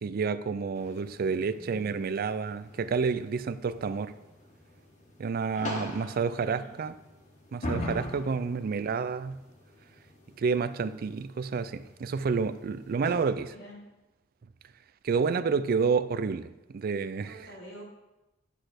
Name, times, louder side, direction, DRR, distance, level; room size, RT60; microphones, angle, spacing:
voice 1, 0.0-4.1 5.2-6.9 7.5-9.3 10.4-13.5 15.0-17.3, right 5 dB, 50° right, 14 dB, 0.4 m, -29 dB
sound 1, 0.7-13.3, left 1 dB, 40° left, 1.6 m, -43 dB
voice 2, 1.1-2.1 6.2-6.8 13.4-13.9 17.2-17.8, equal, 85° left, -4 dB, 3.7 m, -49 dB
9.9 x 4.1 x 6.4 m, 0.99 s
head